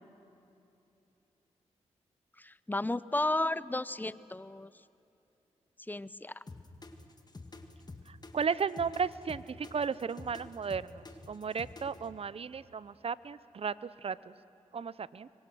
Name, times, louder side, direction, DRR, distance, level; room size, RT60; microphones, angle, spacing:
voice 1, 2.4-4.7 5.9-6.4, left 2 dB, 15° left, 18 dB, 0.7 m, -33 dB
sound 1, 6.5-12.1, left 3 dB, 35° left, 2.0 m, -48 dB
voice 2, 8.1-14.2 14.7-15.3, right 6 dB, 55° right, 18 dB, 0.6 m, -35 dB
25.5 x 22.5 x 6.3 m, 2.8 s
cardioid pair, 50°, 12 cm